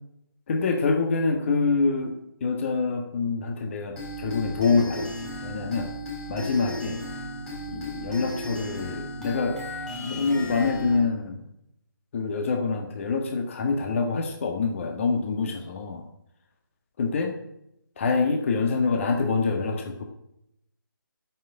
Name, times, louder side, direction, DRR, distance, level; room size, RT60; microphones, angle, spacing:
voice 1, 0.5-2.2 2.4-5.9 6.3-7.0 7.7-9.6 10.0-11.4 12.1-16.0 17.0-17.3 18.0-20.0, left 4 dB, 35° left, 4 dB, 1.6 m, -26 dB
sound 1, 4.0-11.0, equal, 5° left, 3.3 m, -35 dB
9.2 x 7.4 x 8.7 m, 0.79 s
figure-of-eight pair, 150°, 12 cm